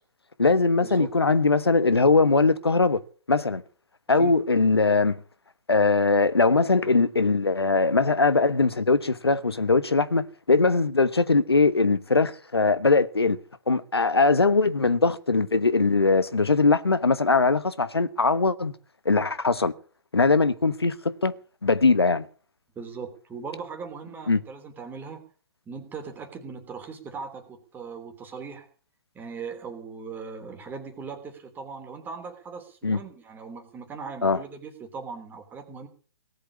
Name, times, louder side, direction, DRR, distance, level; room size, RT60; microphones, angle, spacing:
voice 1, 0.4-3.0 3.3-3.6 4.1-5.2 5.7-13.4 13.7-18.7 19.0-19.7 20.1-21.3 21.6-22.3 24.3-24.4 32.8-33.0 34.2-34.4, left 3 dB, 85° left, 1.3 m, -21 dB
voice 2, 22.7-25.2 25.7-28.7 29.1-35.9, right 5 dB, 15° right, 3.2 m, -39 dB
18.0 x 8.1 x 8.4 m
figure-of-eight pair, 125°, 13 cm